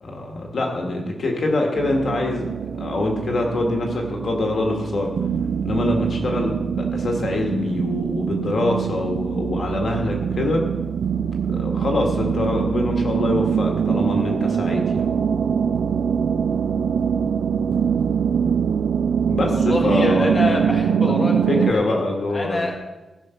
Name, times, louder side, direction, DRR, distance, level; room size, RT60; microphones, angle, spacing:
voice 1, 0.0-2.5 2.8-5.1 5.6-10.6 11.5-15.0 19.3-20.5 21.1-22.7, left 2 dB, 50° left, 1 dB, 1.7 m, -24 dB
sound 1, 1.8-21.7, right 7 dB, 85° right, 0.4 m, -23 dB
voice 2, 19.5-22.0 22.3-22.7, left 2 dB, 20° left, -1 dB, 1.6 m, -26 dB
15.0 x 5.8 x 5.8 m, 1.1 s
wide cardioid pair, 175°, 0 cm